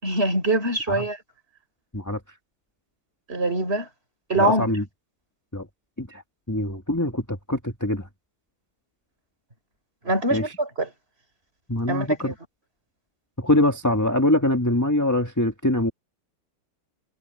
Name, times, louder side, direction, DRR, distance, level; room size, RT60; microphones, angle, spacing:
voice 1, 0.0-1.2 3.3-3.9 4.3-4.7 10.0-10.9 11.9-12.3, right 1 dB, 25° right, 4.6 m, -23 dB
voice 2, 4.4-4.8 5.5-5.7 6.0-6.2 6.5-8.1 10.3-10.4 11.7-12.3 13.4-15.9, left 1 dB, 10° left, 1.7 m, -23 dB
omnidirectional pair, 2.4 m